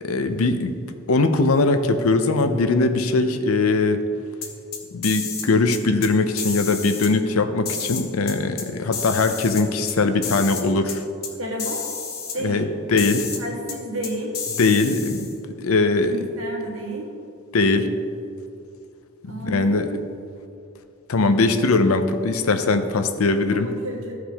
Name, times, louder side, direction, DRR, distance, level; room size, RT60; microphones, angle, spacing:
voice 1, 0.0-0.7 1.1-4.0 4.9-11.0 12.4-13.3 14.6-16.3 17.5-17.9 19.2-19.9 21.1-23.7, left 3 dB, 80° left, 9 dB, 0.6 m, -21 dB
sound 1, 4.4-5.5 5.7-6.1 6.4-7.1 7.6-8.6 8.9-9.9 10.2-10.6 10.9-11.0 11.2-11.3 11.6-12.4 13.0-13.4 13.7-13.8 14.0-15.3, left 6 dB, 50° left, 1.0 m, -30 dB
voice 2, 11.4-11.9 12.3-12.7 13.4-14.4 16.0-17.1 19.3-20.0 23.5-24.1, equal, 85° right, -2 dB, 1.8 m, -31 dB
14.0 x 4.8 x 3.5 m, 2.5 s
head